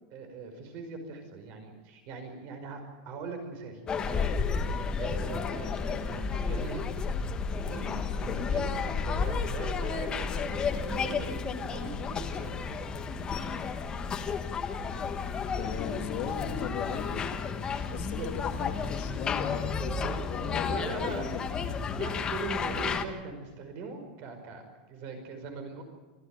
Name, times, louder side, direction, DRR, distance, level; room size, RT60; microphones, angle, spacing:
voice 1, 0.1-4.3 5.0-6.9 7.5-12.6 17.7-18.3 20.7-21.2 21.9-25.8, right 4 dB, 40° right, 6 dB, 5.2 m, -41 dB
sound 1, 3.9-23.0, left 5 dB, 15° left, 1.3 m, -32 dB
voice 2, 15.6-17.3 17.9-21.5, left 9 dB, 40° left, 4 dB, 2.4 m, -38 dB
26.0 x 15.0 x 9.0 m, 1.3 s
supercardioid pair, 170°, 5 cm